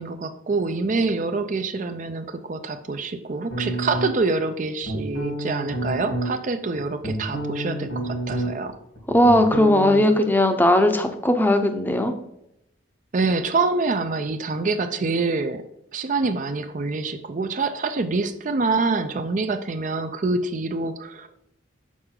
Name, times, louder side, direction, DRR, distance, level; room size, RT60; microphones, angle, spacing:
voice 1, 0.0-8.8 13.1-15.6 15.9-21.4, right 3 dB, 40° right, 8 dB, 0.5 m, -26 dB
sound 1, 3.5-4.3 4.8-6.3 6.8-8.7 8.9-10.0, right 1 dB, 80° left, 2.4 m, -29 dB
voice 2, 9.1-12.1, left 1 dB, 10° left, 6 dB, 0.7 m, -18 dB
6.7 x 6.2 x 3.7 m, 0.80 s
head